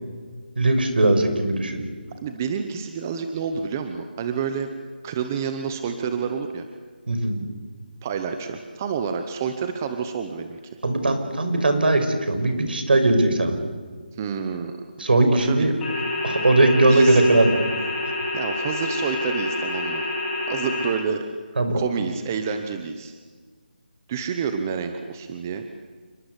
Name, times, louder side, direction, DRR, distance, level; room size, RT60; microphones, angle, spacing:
voice 1, 0.6-1.8 7.1-7.4 10.8-13.6 15.0-15.7 16.2-17.6 21.6-21.8, right 2 dB, 65° right, 8 dB, 5.8 m, -19 dB
voice 2, 2.2-4.7 5.0-6.7 8.0-10.6 14.1-15.7 16.9-17.2 18.3-20.0 20.5-21.2 21.7-23.1 24.1-25.6, right 6 dB, 15° right, 7 dB, 0.9 m, -28 dB
sound 1, 15.8-20.9, left 2 dB, 5° left, 5.0 m, -28 dB
29.5 x 21.5 x 8.2 m, 1.5 s
figure-of-eight pair, 175°, 6 cm